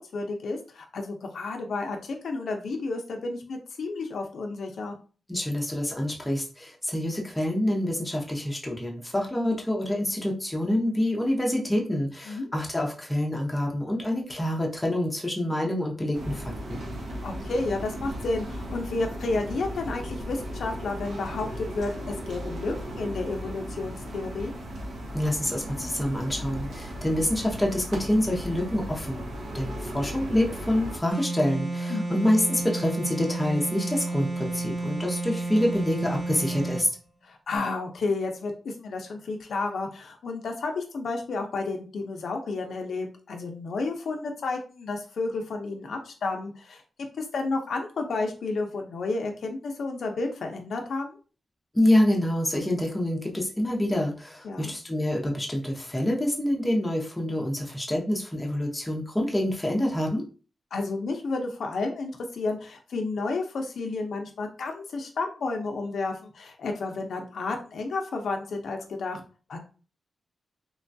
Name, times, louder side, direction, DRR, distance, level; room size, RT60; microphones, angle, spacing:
voice 1, 0.0-5.0 12.3-12.5 17.2-24.5 31.9-32.2 37.2-46.8 47.2-51.2 54.4-54.7 60.7-69.2 69.5-69.6, left 3 dB, 70° left, 3 dB, 0.5 m, -31 dB
voice 2, 5.3-16.8 25.1-29.3 29.5-36.9 51.7-60.2, left 1 dB, 10° left, -1 dB, 0.6 m, -26 dB
sound 1, 16.1-31.0, equal, 70° right, 0.7 m, -36 dB
sound 2, 31.1-36.9, right 2 dB, 20° right, 1.0 m, -31 dB
3.0 x 2.2 x 2.6 m, 0.37 s
wide cardioid pair, 140°, 0 cm